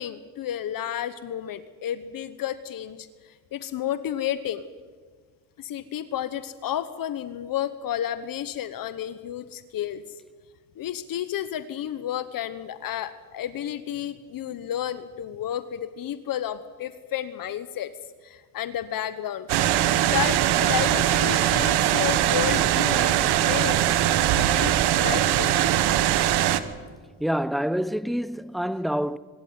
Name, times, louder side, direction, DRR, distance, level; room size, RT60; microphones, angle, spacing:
voice 1, 0.0-4.7 5.6-10.0 10.8-17.9 18.2-19.6 20.0-24.0 24.4-25.7, left 11 dB, 60° left, 1.1 m, -31 dB
sound 1, 19.5-26.6, right 12 dB, 85° right, 1.3 m, -21 dB
voice 2, 27.2-29.2, equal, ahead, 0.6 m, -27 dB
24.5 x 13.0 x 9.4 m
cardioid pair, 90°, 38 cm